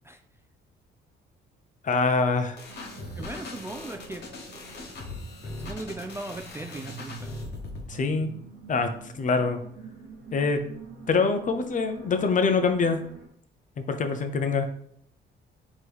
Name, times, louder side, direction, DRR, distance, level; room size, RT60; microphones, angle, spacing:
voice 1, 1.8-2.6 7.9-8.3 8.7-8.9 9.1-9.6 10.3-10.6 11.1-13.0 13.8-14.7, left 4 dB, 40° left, 7 dB, 0.6 m, -24 dB
sound 1, 2.6-7.9, left 2 dB, 60° left, 1.1 m, -40 dB
sound 2, 2.7-13.3, right 5 dB, 60° right, 0.8 m, -46 dB
voice 2, 3.1-4.3 5.4-7.4, right 2 dB, 15° right, 6 dB, 0.3 m, -38 dB
4.3 x 3.0 x 3.3 m, 0.65 s
cardioid pair, 90°, 20 cm